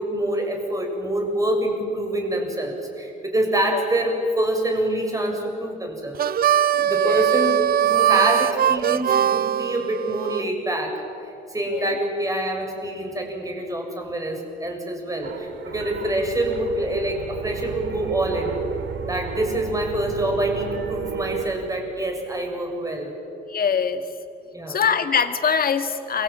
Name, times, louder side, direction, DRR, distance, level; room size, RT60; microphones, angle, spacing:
voice 1, 0.0-6.2 6.9-11.0 11.5-18.6 19.1-23.1 24.5-24.8, right 1 dB, 15° right, 2 dB, 7.4 m, -26 dB
Harmonica, 6.1-10.4, right 10 dB, 50° right, 0.6 m, -21 dB
voice 2, 6.7-7.3 11.7-12.0 23.5-24.0 24.7-26.2, left 6 dB, 50° left, 8 dB, 2.2 m, -23 dB
sound 1, 15.2-21.4, right 6 dB, 70° right, 3.5 m, -32 dB
28.0 x 23.5 x 9.0 m, 2.8 s
cardioid pair, 90°, 20 cm